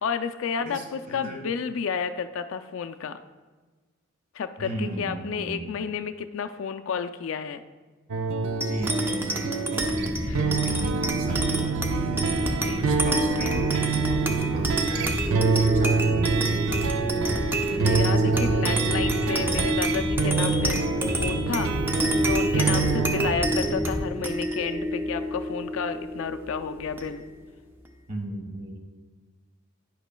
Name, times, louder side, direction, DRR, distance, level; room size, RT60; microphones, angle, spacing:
voice 1, 0.0-3.2 4.3-7.6 10.3-10.4 12.4-13.1 17.5-20.9 21.2-21.7 22.2-27.2, left 6 dB, 65° left, 9 dB, 0.4 m, -31 dB
voice 2, 0.6-1.4 4.6-5.7 8.5-16.9 18.0-18.9 22.6-22.9 28.1-28.8, right 1 dB, 40° right, 2 dB, 1.3 m, -37 dB
sound 1, 8.1-23.3, right 5 dB, 70° right, 0.5 m, -27 dB
sound 2, 8.6-27.4, right 1 dB, 10° right, 0.4 m, -29 dB
sound 3, 9.8-24.1, left 1 dB, 30° left, 0.7 m, -32 dB
10.5 x 8.0 x 2.2 m, 1.3 s
head